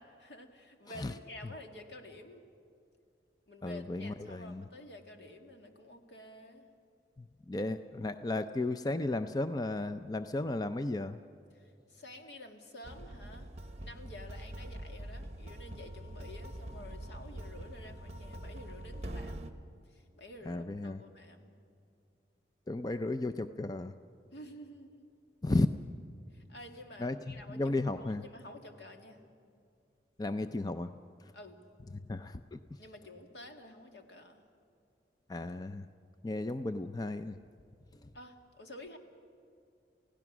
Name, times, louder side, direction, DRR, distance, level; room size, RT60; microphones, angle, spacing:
voice 1, 0.0-2.4 3.5-6.7 11.5-13.5 13.8-19.5 19.8-21.5 24.3-25.1 26.3-29.2 31.3-31.6 32.8-34.4 38.1-39.0, left 1 dB, 75° left, 4 dB, 2.0 m, -50 dB
voice 2, 3.6-4.6 7.2-11.2 20.5-21.0 22.7-23.9 25.4-25.7 27.0-28.2 30.2-30.9 32.1-32.6 35.3-35.9 36.2-37.4 38.0-38.1, left 2 dB, 20° left, 10 dB, 0.4 m, -34 dB
sound 1, 12.8-19.5, right 1 dB, 40° right, 1.1 m, -44 dB
29.0 x 16.5 x 6.1 m, 2.5 s
head